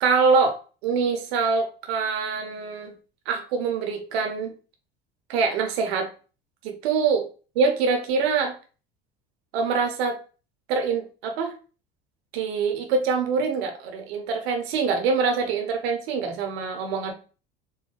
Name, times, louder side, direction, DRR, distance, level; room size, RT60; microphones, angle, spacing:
voice 1, 0.0-0.6 0.8-2.9 3.3-4.5 5.3-6.1 6.6-7.3 7.6-8.5 9.5-10.2 10.7-11.5 12.3-17.1, right 5 dB, 75° right, 4 dB, 0.7 m, -24 dB
3.9 x 2.2 x 2.4 m, 0.35 s
hypercardioid pair, 80°, 31 cm